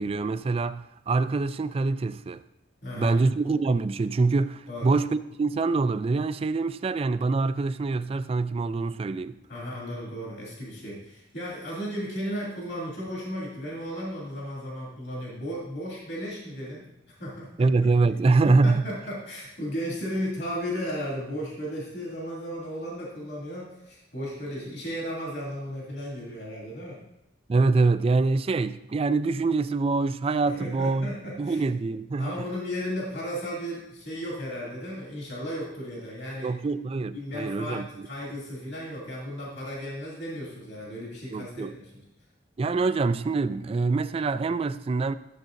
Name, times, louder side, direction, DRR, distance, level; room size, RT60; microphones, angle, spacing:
voice 1, 0.0-2.4 3.0-9.4 17.6-18.8 27.5-31.1 31.4-32.4 36.4-38.1 41.3-41.7 42.6-45.2, right 3 dB, 35° right, 0.3 m, -25 dB
voice 2, 2.8-3.2 4.7-4.9 9.5-16.8 17.2-17.7 18.4-27.0 30.5-31.6 32.2-36.5 37.1-42.0, equal, 70° left, 2.7 m, -35 dB
13.0 x 7.4 x 2.6 m
head